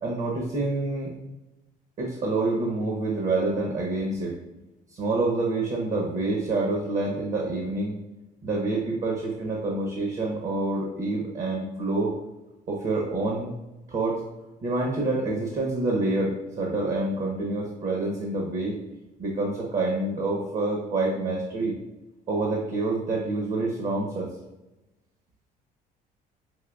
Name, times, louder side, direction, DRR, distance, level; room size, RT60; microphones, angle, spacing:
voice 1, 0.0-1.1 2.0-4.4 4.9-8.0 8.4-12.1 12.7-13.5 13.9-14.2 14.6-18.8 19.2-21.7 22.3-24.3, right 2 dB, 45° right, 0 dB, 0.9 m, -27 dB
5.5 x 2.8 x 2.3 m, 1.0 s
cardioid pair, 110°, 17 cm